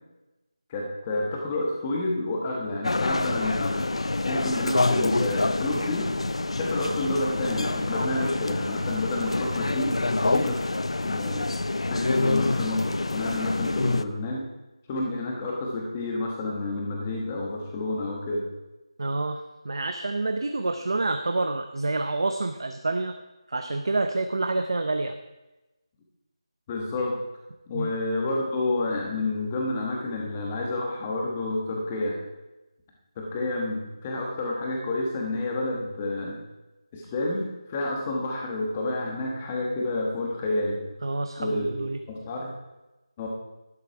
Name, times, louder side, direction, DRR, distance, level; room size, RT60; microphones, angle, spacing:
voice 1, 0.7-3.9 4.2-6.1 6.6-10.6 11.0-11.5 11.9-14.5 14.9-18.5 26.7-27.2 27.7-32.2 33.2-36.4 36.9-40.8 41.4-42.5 43.2-43.3, left 2 dB, 10° left, -1 dB, 1.2 m, -29 dB
sound 1, 2.8-14.0, left 2 dB, 80° left, 0.6 m, -26 dB
voice 2, 19.0-23.1 23.5-25.1 27.7-27.9 41.0-42.0, right 2 dB, 55° right, 7 dB, 0.7 m, -28 dB
12.0 x 9.5 x 4.6 m, 1.0 s
figure-of-eight pair, 175°, 3 cm